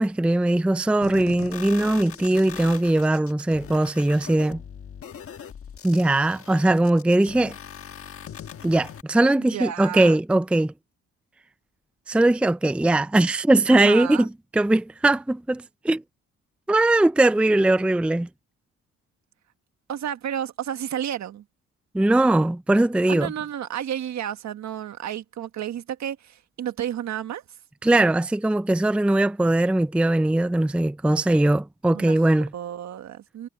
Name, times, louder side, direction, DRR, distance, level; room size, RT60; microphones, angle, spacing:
voice 1, 0.0-4.6 5.8-7.5 8.6-10.7 12.1-16.0 16.7-18.3 21.9-23.3 27.8-32.5, right 2 dB, 5° right, 0.5 m, -20 dB
sound 1, 1.0-9.0, left 8 dB, 50° left, 1.4 m, -41 dB
voice 2, 9.4-10.2 13.7-14.3 19.9-21.4 23.1-27.4 31.9-32.2 32.5-33.5, right 10 dB, 65° right, 1.6 m, -31 dB
cardioid pair, 90°, 30 cm